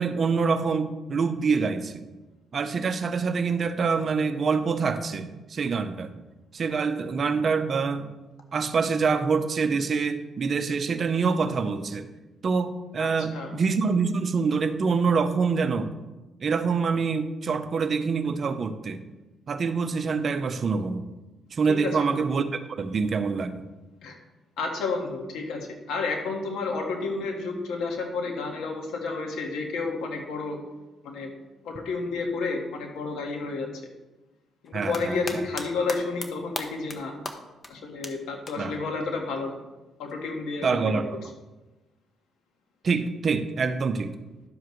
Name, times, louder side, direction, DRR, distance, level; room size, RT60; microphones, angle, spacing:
voice 1, 0.0-2.0 2.5-6.1 6.5-8.1 8.5-12.1 12.4-15.9 16.4-19.0 19.5-21.1 21.5-23.6 34.7-35.4 38.6-38.7 40.6-41.2 42.8-44.2, right 5 dB, 45° right, 9 dB, 0.7 m, -26 dB
voice 2, 13.0-13.5 21.7-22.1 24.0-24.1 24.6-30.6 31.0-31.3 31.6-33.7 34.6-37.1 37.7-39.6 40.0-41.0, left 4 dB, 85° left, 2 dB, 1.6 m, -31 dB
sound 1, 34.7-35.6 35.9-36.3 36.6-37.0 37.3-37.4 37.6-37.7 38.0-38.1 38.5-38.6 40.1-40.2, left 3 dB, 30° left, 1.0 m, -34 dB
11.5 x 7.3 x 3.1 m, 1.1 s
cardioid pair, 90°, 0 cm